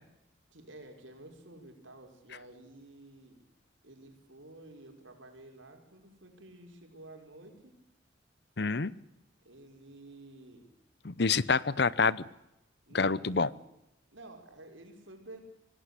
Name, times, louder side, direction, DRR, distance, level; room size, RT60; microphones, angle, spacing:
voice 1, 0.5-3.4 3.8-7.8 9.4-10.7 12.9-13.6 14.1-15.4, right 2 dB, 80° right, 4 dB, 5.3 m, -51 dB
voice 2, 8.6-8.9 11.0-12.3 12.9-13.5, left 4 dB, 55° left, 20 dB, 0.8 m, -27 dB
26.0 x 18.0 x 8.3 m, 0.88 s
head